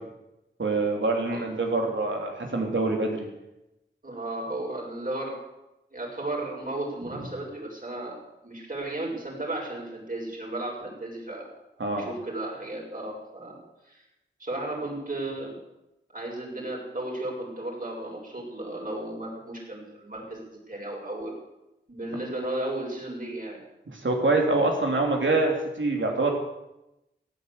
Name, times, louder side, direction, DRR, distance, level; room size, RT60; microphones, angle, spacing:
voice 1, 0.6-3.3 11.8-12.1 23.9-26.3, right 2 dB, 85° right, 1 dB, 3.4 m, -25 dB
voice 2, 4.0-5.4 5.9-11.5 11.9-13.6 13.9-14.0 14.4-15.6 16.1-21.3 21.9-23.6, right 2 dB, 45° right, -2 dB, 7.0 m, -34 dB
16.0 x 10.0 x 8.3 m, 0.92 s
wide cardioid pair, 55°, 19 cm